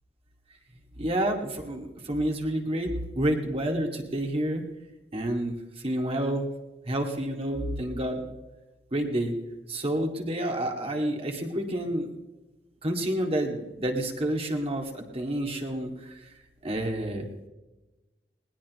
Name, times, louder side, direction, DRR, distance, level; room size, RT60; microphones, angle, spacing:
voice 1, 1.0-4.6 5.1-5.5 5.8-6.5 6.9-8.2 8.9-9.3 9.7-12.1 12.8-16.2 16.6-17.3, right 1 dB, 35° right, 2 dB, 2.2 m, -29 dB
20.0 x 19.5 x 3.2 m, 1.1 s
head